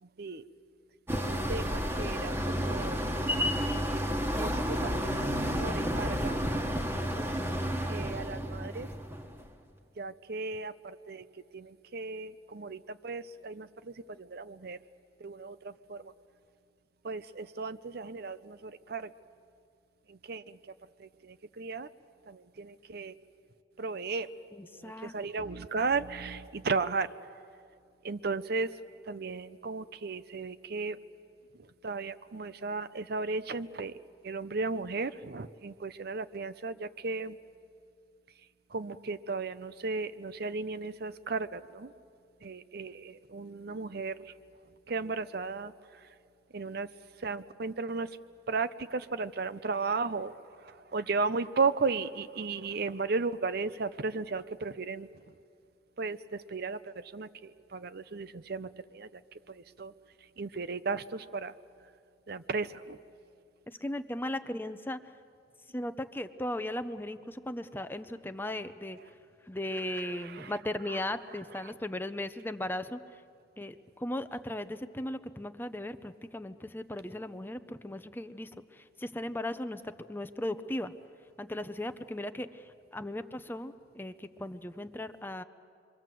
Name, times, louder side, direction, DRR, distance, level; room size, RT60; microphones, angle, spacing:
voice 1, 0.0-0.4 1.2-3.0 4.4-6.5 7.9-8.9 10.0-11.2 11.5-14.8 15.2-16.1 17.0-19.1 20.1-20.6 21.0-21.9 22.3-23.1 23.8-24.3 24.7-27.1 28.0-28.7 29.0-31.0 31.5-34.0 34.2-37.4 38.7-41.9 42.4-44.3 44.9-45.7 46.5-46.9 47.2-48.1 48.5-50.4 50.6-55.1 56.0-59.2 59.5-59.9 60.4-61.5 62.3-63.0 69.0-69.1 69.7-70.6 70.9-71.0 71.3-71.7, right 4 dB, 60° right, 13 dB, 0.7 m, -35 dB
sound 1, 1.1-9.4, equal, 15° right, 1.5 m, -31 dB
voice 2, 7.2-7.8 24.6-25.1 63.7-65.0 65.7-69.0 69.5-73.0 73.6-80.9 81.4-82.5 82.9-85.4, left 1 dB, 10° left, 10 dB, 0.7 m, -37 dB
28.0 x 23.5 x 7.6 m, 2.3 s
head